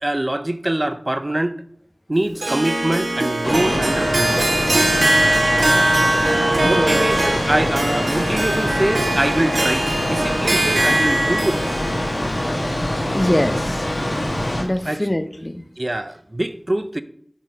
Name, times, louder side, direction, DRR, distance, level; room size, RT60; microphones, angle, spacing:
voice 1, 0.0-1.6 2.1-4.6 6.6-11.7 14.8-15.1 15.8-17.0, right 1 dB, 40° right, 0.4 m, -24 dB
Harp, 2.4-13.6, right 1 dB, 85° right, 0.9 m, -21 dB
sound 1, 3.4-14.6, left 1 dB, 75° left, 1.4 m, -24 dB
voice 2, 6.6-7.1 13.1-13.9 14.6-15.6, left 1 dB, 30° left, 0.5 m, -23 dB
6.3 x 4.1 x 5.0 m
wide cardioid pair, 45°, 0 cm